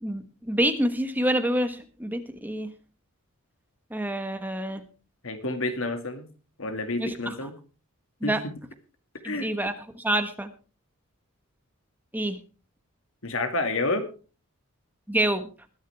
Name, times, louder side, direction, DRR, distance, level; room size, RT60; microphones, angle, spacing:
voice 1, 0.0-2.7 3.9-4.8 7.0-7.5 8.2-8.4 9.2-10.5 12.1-12.4 15.1-15.5, right 1 dB, 10° right, 8 dB, 1.3 m, -27 dB
voice 2, 5.2-6.3 6.6-7.5 8.2-8.5 9.2-9.5 13.2-14.1, left 2 dB, 60° left, 7 dB, 2.2 m, -29 dB
20.5 x 10.5 x 3.5 m, 0.35 s
head